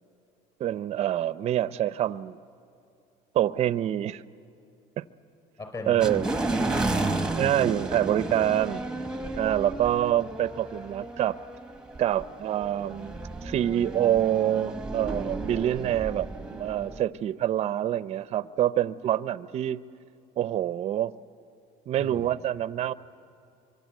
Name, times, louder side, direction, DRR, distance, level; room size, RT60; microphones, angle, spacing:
voice 1, 0.6-2.4 3.3-4.2 5.0-5.1 5.9-6.3 7.4-8.8 9.4-11.4 12.0-19.8 20.4-21.1 21.9-22.9, right 11 dB, 40° right, 16 dB, 0.6 m, -26 dB
voice 2, 5.6-7.4 22.0-22.3, left 2 dB, 25° left, 4 dB, 5.0 m, -38 dB
sound 1, 6.0-17.0, right 2 dB, 5° right, 1.0 m, -33 dB
25.5 x 24.0 x 9.3 m, 2.6 s
cardioid pair, 125°, 16 cm